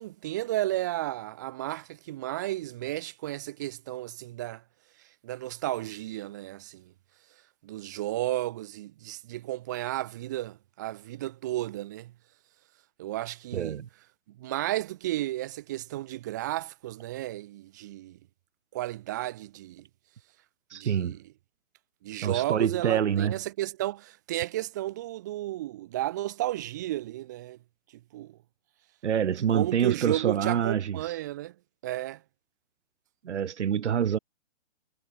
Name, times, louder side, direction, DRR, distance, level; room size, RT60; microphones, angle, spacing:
voice 1, 0.0-4.6 5.2-6.9 7.6-12.1 13.0-13.8 14.3-18.2 18.7-19.9 20.7-21.2 22.0-27.6 28.1-28.4 29.5-31.5 31.8-32.2, right 15 dB, 15° right, 0.5 m, -33 dB
voice 2, 13.5-13.9 20.7-21.2 22.2-23.4 29.0-31.2 33.2-34.2, right 8 dB, 65° right, 5.2 m, -26 dB
hypercardioid pair, 155°, 38 cm